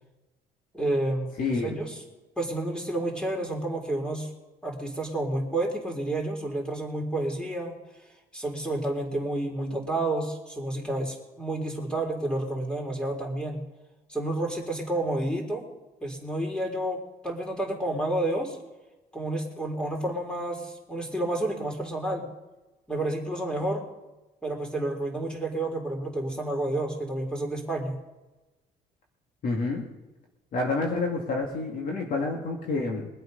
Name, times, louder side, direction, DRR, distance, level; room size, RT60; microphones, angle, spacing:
voice 1, 0.7-1.3 1.6-2.0 2.4-4.3 4.6-7.8 8.3-13.6 14.1-15.6 16.0-18.6 19.1-22.3 22.9-23.8 24.4-28.0, right 1 dB, 5° left, 1 dB, 3.9 m, -30 dB
voice 2, 1.4-1.7 29.4-29.9 30.5-33.1, left 3 dB, 55° left, 0 dB, 2.3 m, -28 dB
23.5 x 8.4 x 5.4 m, 1.1 s
cardioid pair, 110°, 17 cm